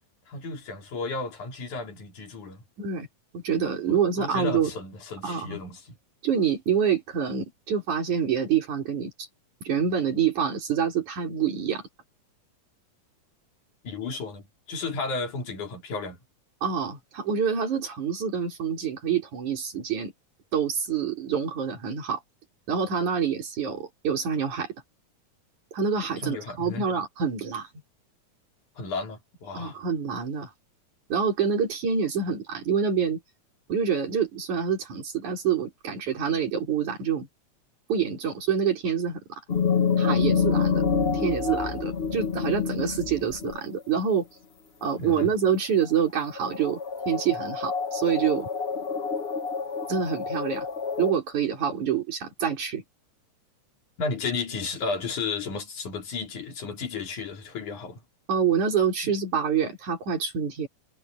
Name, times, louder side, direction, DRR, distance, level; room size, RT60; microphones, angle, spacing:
voice 1, 0.3-2.6 3.9-6.0 13.8-16.2 26.2-26.9 28.8-29.8 45.0-45.3 54.0-58.0 59.0-59.1, left 4 dB, 80° left, 4.9 m, -33 dB
voice 2, 3.3-4.7 5.2-5.6 6.2-9.1 9.6-11.8 16.6-20.1 20.5-22.2 22.7-24.7 25.7-27.7 29.5-30.5 31.1-33.2 33.7-37.3 37.9-39.4 40.0-40.8 41.1-44.3 44.8-48.5 49.9-50.7 51.0-52.8 58.3-60.7, right 7 dB, 75° right, 5.8 m, -26 dB
sound 1, 39.5-43.8 45.8-45.9 46.3-51.1, left 6 dB, 65° left, 0.6 m, -27 dB
omnidirectional pair, 3.4 m